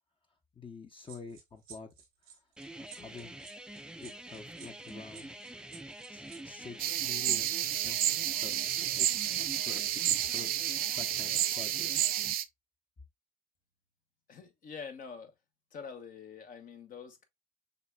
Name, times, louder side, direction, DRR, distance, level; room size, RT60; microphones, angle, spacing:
voice 1, 0.6-1.9 2.2-2.4 3.0-3.4 4.0-5.4 6.1-11.9, left 4 dB, 30° left, 0.9 m, -48 dB
sound 1, 1.0-11.6 11.9-12.1, right 8 dB, 90° right, 1.3 m, -55 dB
sound 2, 2.6-12.3, right 1 dB, 5° right, 0.5 m, -46 dB
sound 3, 6.8-12.4, right 13 dB, 65° right, 0.5 m, -30 dB
voice 2, 14.3-15.3 15.7-17.2, left 6 dB, 55° left, 1.1 m, -45 dB
6.6 x 2.4 x 2.3 m
hypercardioid pair, 55°, 16 cm